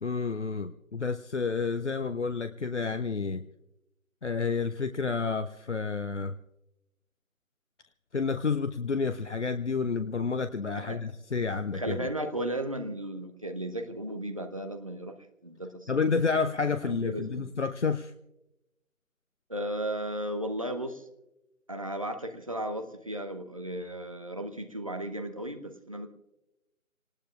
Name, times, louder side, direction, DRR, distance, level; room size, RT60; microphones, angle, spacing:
voice 1, 0.0-3.4 4.2-6.4 8.1-12.1 15.9-18.1, left 5 dB, 55° left, 11 dB, 0.6 m, -30 dB
voice 2, 11.7-15.2 15.4-15.9 16.8-17.5 19.5-21.0 21.7-26.1, right 1 dB, 25° right, 6 dB, 0.8 m, -35 dB
27.5 x 19.0 x 2.4 m, 0.94 s
figure-of-eight pair, 160°, 42 cm